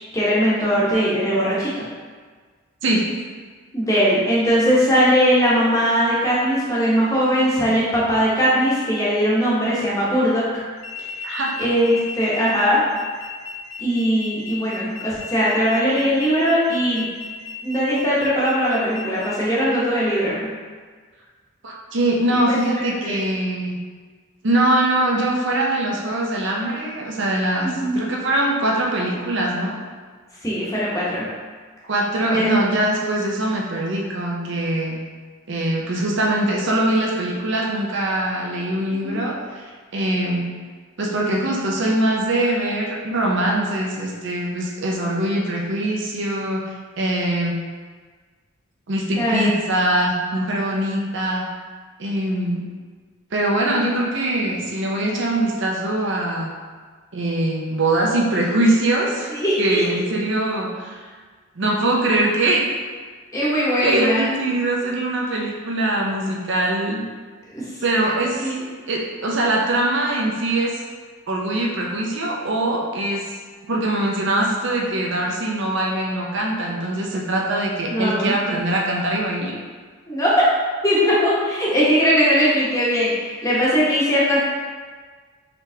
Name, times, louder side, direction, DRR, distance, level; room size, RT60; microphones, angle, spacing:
voice 1, 0.1-1.8 3.7-10.4 11.6-12.8 13.8-17.0 17.6-20.3 22.5-22.6 23.0-23.2 27.8-28.0 30.4-31.2 32.3-32.5 39.0-39.2 49.2-49.5 59.3-60.0 63.3-64.3 67.5-67.6 68.4-68.5 77.9-78.3 80.1-80.3 80.8-84.4, equal, 15° left, -8 dB, 0.9 m, -20 dB
sound 1, 10.8-19.3, left 4 dB, 70° left, 0.7 m, -36 dB
voice 2, 11.2-11.6 21.6-23.8 24.4-29.8 31.9-35.0 35.5-39.6 39.9-40.5 41.0-47.6 48.9-51.5 52.0-52.6 53.3-56.5 57.1-61.0 61.6-62.6 63.8-67.0 67.8-68.5 68.9-70.8 71.3-73.3 73.7-79.5, right 1 dB, 55° right, -1 dB, 0.6 m, -22 dB
4.1 x 3.3 x 2.7 m, 1.5 s
head